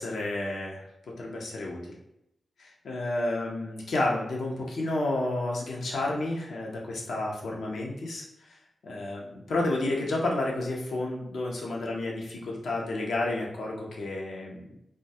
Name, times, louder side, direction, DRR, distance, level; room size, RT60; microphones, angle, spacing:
voice 1, 0.0-1.8 2.6-8.6 8.8-14.6, left 2 dB, 80° left, -2 dB, 0.6 m, -31 dB
2.2 x 2.2 x 2.7 m, 0.82 s
cardioid pair, 45°, 0 cm